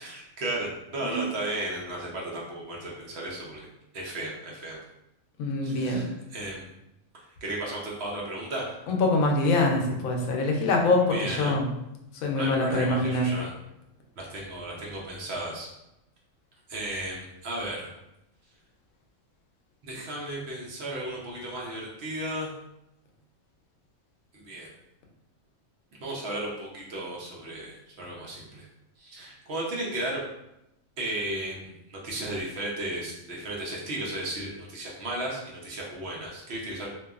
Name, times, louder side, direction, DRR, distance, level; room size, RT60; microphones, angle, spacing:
voice 1, 0.0-3.7 3.9-4.8 5.6-6.7 7.4-8.9 11.0-11.5 12.4-13.6 14.2-15.7 16.7-17.9 19.8-22.5 24.3-24.7 26.0-28.7 29.0-30.2 31.0-36.9, right 1 dB, 60° right, -3 dB, 0.8 m, -34 dB
voice 2, 5.4-6.1 8.9-11.7 12.2-13.3, left 2 dB, 85° left, 1 dB, 1.0 m, -24 dB
2.8 x 2.2 x 2.3 m, 0.87 s
omnidirectional pair, 1.4 m